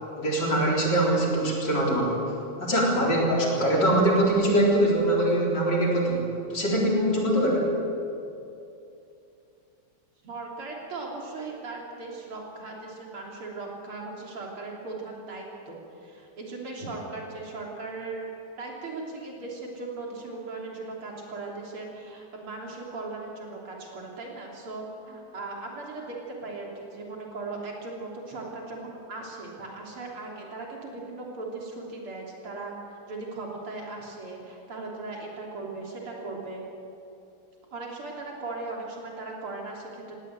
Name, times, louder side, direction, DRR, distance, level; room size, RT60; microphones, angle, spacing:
voice 1, 0.2-2.2 2.6-6.2 6.5-7.8, right 1 dB, 50° left, -2 dB, 4.6 m, -23 dB
voice 2, 10.2-18.3 18.6-36.6 37.7-40.2, right 3 dB, 80° right, -2 dB, 4.3 m, -38 dB
19.0 x 17.0 x 9.1 m, 2.7 s
omnidirectional pair, 2.4 m